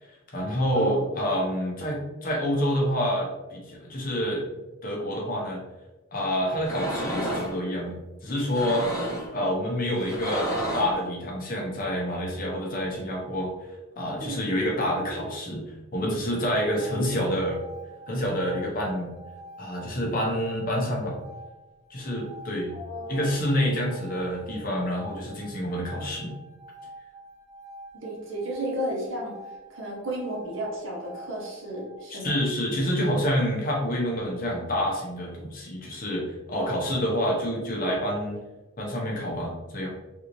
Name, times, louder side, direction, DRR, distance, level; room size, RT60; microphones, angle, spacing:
voice 1, 0.3-4.5 4.8-5.6 6.1-8.0 8.2-8.9 9.3-13.5 14.0-15.6 15.9-17.6 18.1-19.1 19.6-21.2 21.9-22.7 23.1-26.3 32.1-38.4 38.8-39.9, equal, 40° left, -2 dB, 0.8 m, -27 dB
sound 1, 6.6-7.5 8.4-9.3 10.0-11.0, equal, 15° left, 0.9 m, -31 dB
sound 2, 16.2-32.0, right 1 dB, 35° right, 0.6 m, -47 dB
voice 2, 22.7-23.8 27.9-29.4 29.7-32.4 36.5-37.2, right 1 dB, 60° right, -3 dB, 0.9 m, -33 dB
3.4 x 2.7 x 3.1 m, 1.1 s
head